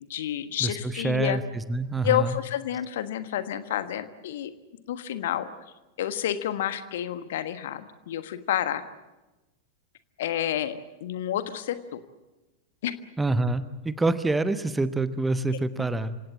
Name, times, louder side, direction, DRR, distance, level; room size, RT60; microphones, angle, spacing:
voice 1, 0.1-1.4 2.0-4.5 4.9-5.5 6.0-8.8 10.2-12.0 12.8-12.9, left 11 dB, 55° left, 11 dB, 1.4 m, -29 dB
voice 2, 0.6-2.4 13.2-16.2, right 2 dB, 10° right, 13 dB, 1.0 m, -26 dB
27.0 x 17.0 x 8.7 m, 1.1 s
figure-of-eight pair, 90°, 0 cm